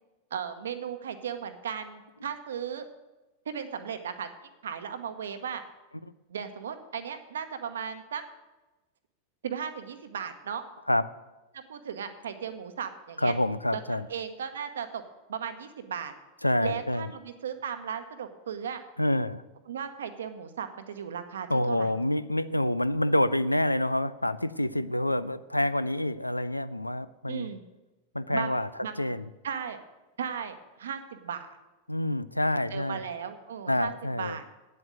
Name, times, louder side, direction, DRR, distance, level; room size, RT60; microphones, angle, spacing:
voice 1, 0.3-2.8 3.5-4.3 4.6-5.6 6.3-8.2 9.4-10.6 11.5-13.3 13.7-15.0 15.3-16.1 16.6-18.8 19.7-21.9 27.3-27.6 28.3-29.2 29.4-29.8 30.2-31.6 32.7-34.4, right 7 dB, 65° right, 9 dB, 1.0 m, -36 dB
voice 2, 13.2-14.1 16.4-17.1 19.0-19.4 21.5-27.5 28.1-28.7 29.0-29.3 31.9-33.0 33.7-34.4, left 1 dB, 85° left, 15 dB, 0.4 m, -27 dB
9.1 x 7.7 x 8.0 m, 1.1 s
figure-of-eight pair, 90°, 0 cm